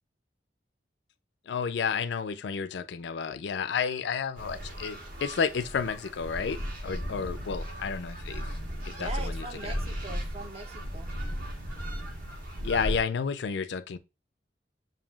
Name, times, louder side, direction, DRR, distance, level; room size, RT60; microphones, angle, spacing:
voice 1, 1.5-6.6 6.8-8.4 8.9-9.3 12.6-14.0, left 6 dB, 70° left, 0.4 m, -31 dB
sound 1, 4.4-13.0, equal, 55° right, 1.4 m, -36 dB
voice 2, 8.9-11.1, right 2 dB, 35° right, 0.6 m, -41 dB
7.1 x 2.7 x 2.3 m
head